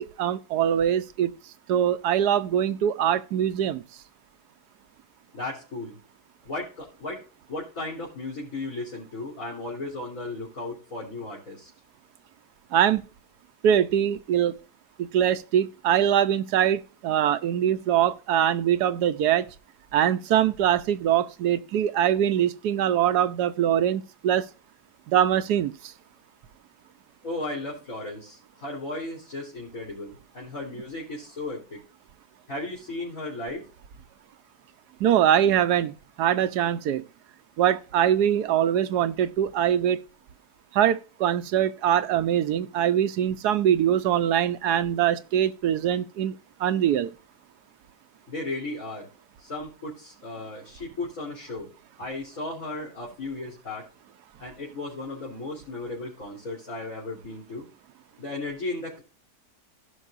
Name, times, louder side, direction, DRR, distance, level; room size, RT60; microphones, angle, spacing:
voice 1, 0.0-1.3 1.7-3.8 12.7-13.0 13.6-14.5 15.0-19.5 19.9-24.4 25.1-25.9 35.0-37.0 37.6-40.0 40.7-47.1, right 10 dB, 75° right, 1.3 m, -23 dB
voice 2, 5.3-6.0 6.4-7.2 7.5-11.7 27.2-31.8 32.5-33.6 48.3-49.1 49.4-51.7 52.0-53.8 54.4-57.7 58.2-59.0, left 2 dB, 50° left, 3.9 m, -35 dB
16.5 x 5.9 x 2.6 m
omnidirectional pair, 1.8 m